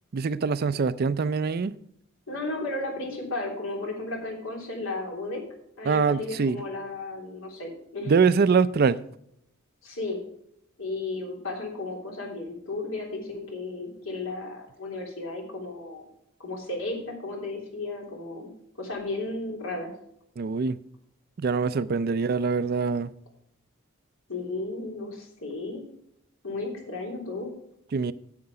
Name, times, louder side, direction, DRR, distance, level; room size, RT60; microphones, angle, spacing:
voice 1, 0.1-1.7 5.8-6.6 8.1-9.0 20.4-20.8 21.4-23.1 27.9-28.1, right 5 dB, 50° right, 0.4 m, -24 dB
voice 2, 2.3-5.4 5.8-8.1 9.8-10.2 10.8-16.0 16.4-18.5 18.8-19.9 24.3-25.8 26.4-27.5, left 2 dB, 85° left, 3.2 m, -34 dB
9.5 x 7.9 x 4.8 m
head